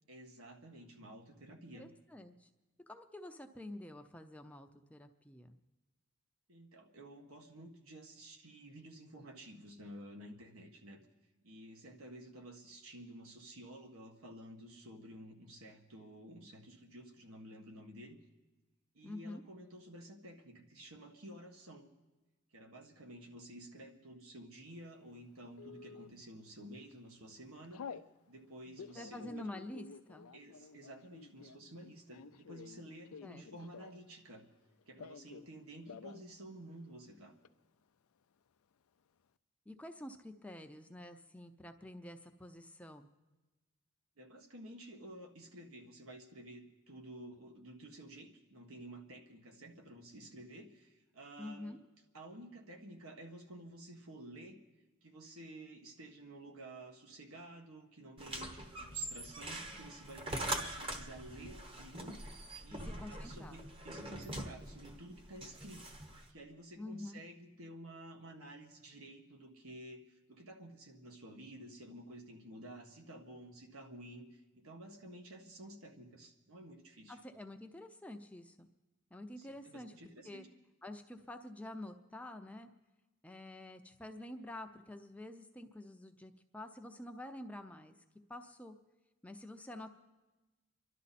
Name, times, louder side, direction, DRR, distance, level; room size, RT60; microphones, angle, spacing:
voice 1, 0.1-1.9 6.5-11.0 11.4-18.2 18.9-21.9 22.5-28.0 28.3-29.3 30.3-34.4 34.9-37.3 44.2-51.8 52.1-54.6 55.0-62.3 62.6-66.0 66.3-77.2 79.4-80.4, right 1 dB, 80° right, 3 dB, 1.6 m, -52 dB
voice 2, 1.7-2.5 2.9-5.6 19.0-19.4 28.9-30.3 33.2-33.7 39.7-43.1 51.4-51.8 62.7-63.6 66.8-67.2 77.1-78.7 79.1-79.9 80.2-80.4 80.8-82.7 83.2-87.9 88.3-88.8 89.2-89.9, left 1 dB, 5° left, 5 dB, 0.6 m, -48 dB
Telephone, 25.6-26.1 26.7-26.9 27.2-28.1 28.6-34.1 34.4-35.5 35.8-36.3 36.6-36.7 36.9-37.5, left 6 dB, 90° left, 0.5 m, -51 dB
sound 1, 58.2-66.3, right 1 dB, 25° right, 1.0 m, -43 dB
28.0 x 12.0 x 4.2 m, 1.1 s
head